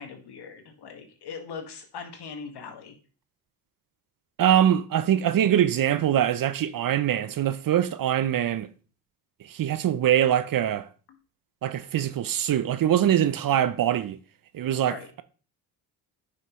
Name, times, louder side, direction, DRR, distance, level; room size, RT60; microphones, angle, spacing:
voice 1, 0.0-3.0 11.1-11.2 14.9-15.1, left 5 dB, 60° left, 1.9 m, -40 dB
voice 2, 4.4-8.7 9.4-10.9 11.6-14.2 14.5-15.2, right 10 dB, 50° right, 0.7 m, -23 dB
9.6 x 5.7 x 3.1 m
supercardioid pair, 65°, 44 cm